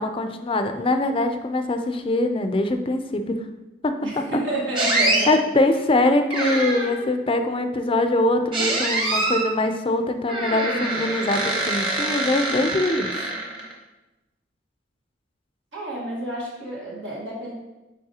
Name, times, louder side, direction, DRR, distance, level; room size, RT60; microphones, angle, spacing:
voice 1, 0.0-3.4 3.8-3.9 5.3-13.1, left 2 dB, 30° left, 7 dB, 0.4 m, -23 dB
voice 2, 4.0-5.4 15.7-17.5, right 1 dB, 80° right, -4 dB, 1.7 m, -29 dB
sound 1, 4.8-5.3 6.3-7.1 8.5-9.5 10.3-13.7, right 2 dB, 25° right, 1.2 m, -25 dB
9.4 x 4.2 x 2.8 m, 1.0 s
head